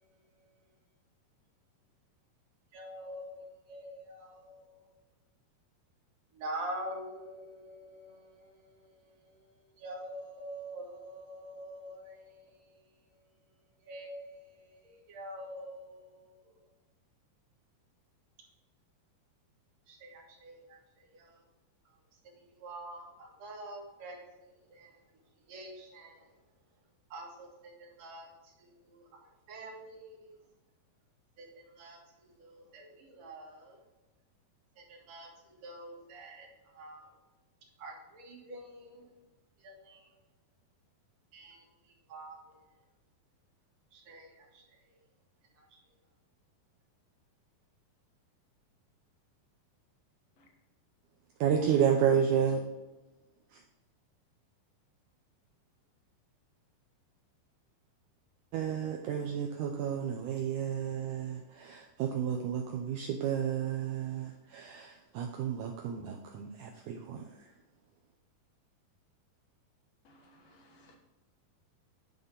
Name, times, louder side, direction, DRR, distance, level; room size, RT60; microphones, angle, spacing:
voice 1, 2.7-4.8 6.3-9.4 9.8-12.8 13.8-16.4 19.9-20.8 21.0-21.4 22.2-24.2 24.7-24.9 25.5-26.2 27.1-28.3 28.6-30.4 31.4-33.8 34.8-36.5 36.7-37.1 37.8-39.1 39.6-40.1 41.3-41.6 42.1-42.4 43.9-44.6 45.6-45.7, right 1 dB, 50° right, -2 dB, 2.6 m, -46 dB
voice 2, 51.4-52.6 58.5-67.2, right 8 dB, 85° right, 3 dB, 1.8 m, -31 dB
voice 3, 70.1-71.0, equal, 55° left, 2 dB, 2.0 m, -61 dB
9.7 x 5.5 x 3.8 m, 1.1 s
omnidirectional pair, 4.4 m